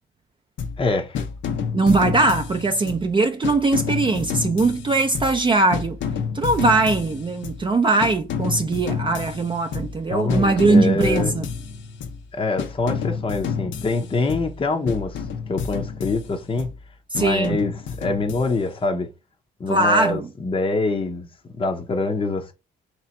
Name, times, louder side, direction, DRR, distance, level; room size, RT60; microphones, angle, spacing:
sound 1, 0.6-0.9 1.1-3.1 3.4-5.5 5.7-7.7 8.0-10.0 10.3-12.2 12.6-14.6 14.9-16.8 17.1-18.8, left 6 dB, 70° left, 0.7 m, -30 dB
voice 1, 0.8-1.2 10.1-11.3 12.3-16.7 17.2-19.1 19.6-21.3 21.5-22.5, left 3 dB, 25° left, 0.7 m, -25 dB
voice 2, 1.7-6.0 6.3-11.5 17.1-17.6 19.7-20.3, right 3 dB, 25° right, 0.5 m, -20 dB
3.2 x 2.9 x 4.3 m
cardioid pair, 90°, 20 cm